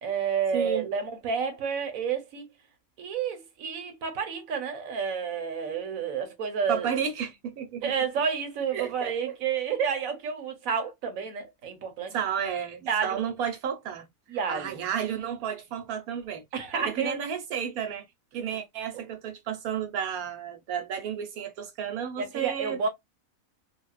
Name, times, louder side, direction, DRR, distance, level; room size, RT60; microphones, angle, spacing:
voice 1, 0.0-2.5 3.0-6.9 7.8-12.1 12.8-13.2 14.3-14.8 16.5-17.1 22.2-22.9, right 6 dB, 70° right, 1.3 m, -30 dB
voice 2, 0.5-0.9 6.7-7.9 8.7-9.1 12.1-14.1 14.5-16.4 16.7-18.0 18.3-22.9, right 8 dB, 85° right, 1.3 m, -32 dB
3.6 x 2.3 x 2.3 m
omnidirectional pair, 1.5 m